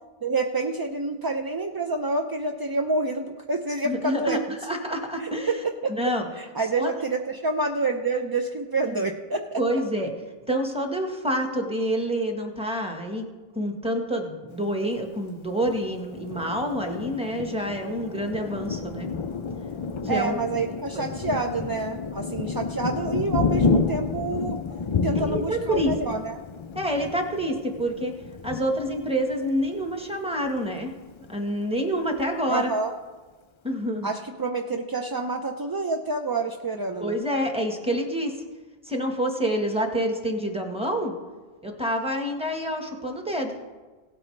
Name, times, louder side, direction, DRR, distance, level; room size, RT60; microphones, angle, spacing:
voice 1, 0.2-4.4 5.2-5.6 5.8-9.8 20.1-24.6 25.0-26.4 32.5-32.9 34.0-37.2, right 3 dB, 35° right, 3 dB, 0.4 m, -28 dB
voice 2, 3.8-5.5 5.9-6.2 6.8-6.9 8.9-9.0 9.6-10.1 10.5-13.2 13.5-19.1 20.0-20.4 20.9-21.0 25.2-25.9 26.7-28.1 28.4-30.9 31.3-32.7 33.6-34.1 37.0-38.3 38.8-41.1 41.6-43.5, equal, 5° right, 3 dB, 1.3 m, -27 dB
Thunder, 15.6-30.0 30.4-30.6 30.9-31.5, left 4 dB, 50° left, 0.3 m, -30 dB
17.0 x 9.0 x 3.3 m, 1.3 s
omnidirectional pair, 1.0 m